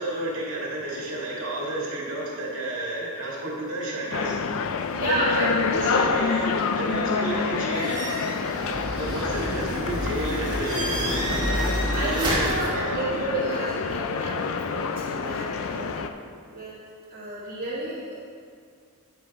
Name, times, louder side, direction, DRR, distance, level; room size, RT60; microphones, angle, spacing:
voice 1, 0.0-4.4 5.8-8.0 9.0-11.1 11.6-13.3, right 1 dB, 65° right, -4 dB, 2.2 m, -31 dB
sound 1, 4.1-16.1, left 5 dB, 65° left, 0.5 m, -28 dB
voice 2, 4.9-6.0 11.9-16.1 16.5-16.8 17.1-18.1, right 1 dB, 45° right, -9 dB, 2.0 m, -30 dB
sound 2, 7.7-12.7, right 1 dB, 20° right, 1.7 m, -29 dB
9.6 x 6.8 x 4.3 m, 2.2 s
head